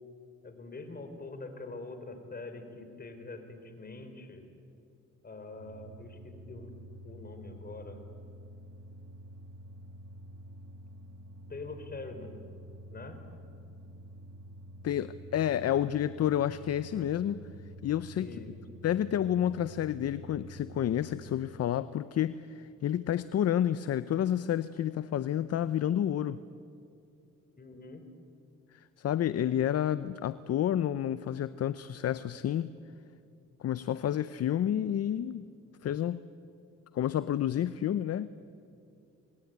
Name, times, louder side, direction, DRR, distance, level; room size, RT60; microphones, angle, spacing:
voice 1, 0.4-4.4 5.2-6.8 7.0-8.0 11.5-12.3 12.9-13.2 18.2-18.5 27.6-28.0, left 3 dB, 30° left, 7 dB, 4.4 m, -44 dB
sound 1, 5.5-21.6, equal, 60° right, 1.6 m, -49 dB
voice 2, 14.8-17.4 17.8-18.3 18.8-26.4 28.7-32.7 33.6-35.5 35.8-36.2 36.9-38.3, left 10 dB, 55° left, 15 dB, 0.7 m, -30 dB
26.5 x 20.5 x 9.4 m, 2.5 s
cardioid pair, 90°, 30 cm